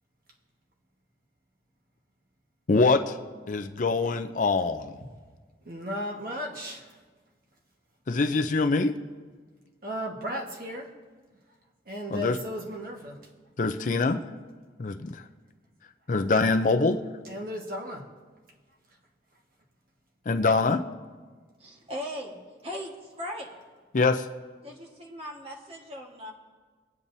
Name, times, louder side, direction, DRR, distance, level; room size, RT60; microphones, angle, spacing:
voice 1, 2.7-3.1 3.5-4.9 8.1-8.9 12.1-12.4 13.6-14.2 14.8-15.2 16.1-17.0 20.3-20.8 23.9-24.3, left 3 dB, 45° left, 8 dB, 0.5 m, -24 dB
voice 2, 5.6-6.9 9.8-10.9 11.9-13.2 17.2-18.1, equal, 55° right, 0 dB, 1.4 m, -35 dB
voice 3, 21.6-22.4 22.6-23.5 24.6-26.3, equal, 35° right, 0 dB, 1.5 m, -38 dB
22.0 x 8.6 x 2.7 m, 1.4 s
head